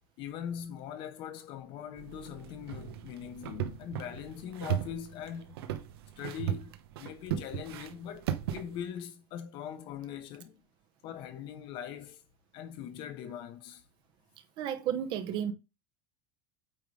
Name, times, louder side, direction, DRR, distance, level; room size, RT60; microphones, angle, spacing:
voice 1, 0.2-5.6 6.2-10.6 11.0-12.2 12.5-13.8, left 9 dB, 40° left, 1.0 m, -41 dB
sound 1, 2.0-8.8, right 10 dB, 85° right, 0.9 m, -37 dB
voice 2, 14.6-15.5, right 9 dB, 35° right, 0.8 m, -32 dB
8.7 x 3.7 x 4.8 m
supercardioid pair, 165°, 13 cm